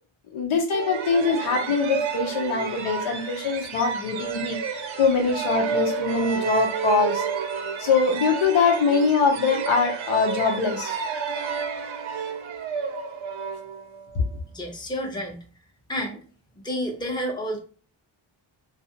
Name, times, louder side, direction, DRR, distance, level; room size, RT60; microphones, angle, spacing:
voice 1, 0.3-7.2 7.8-11.0 14.1-14.2, left 5 dB, 80° left, 2 dB, 0.9 m, -23 dB
sound 1, 0.7-14.2, right 6 dB, 75° right, 0.6 m, -30 dB
voice 2, 14.5-15.4 15.9-16.2 16.6-17.6, equal, 10° left, 1 dB, 0.7 m, -30 dB
2.6 x 2.4 x 2.7 m, 0.40 s
cardioid pair, 105°, 48 cm